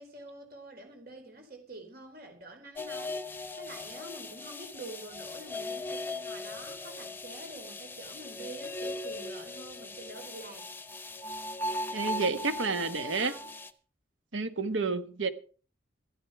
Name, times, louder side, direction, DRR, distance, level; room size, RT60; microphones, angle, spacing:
voice 1, 0.0-10.6 12.6-13.5, right 2 dB, 50° right, 4.1 m, -47 dB
sound 1, 2.8-13.7, left 2 dB, 10° left, 0.9 m, -39 dB
voice 2, 11.9-13.3 14.3-15.3, right 4 dB, 80° right, 1.4 m, -30 dB
13.5 x 12.5 x 4.8 m
head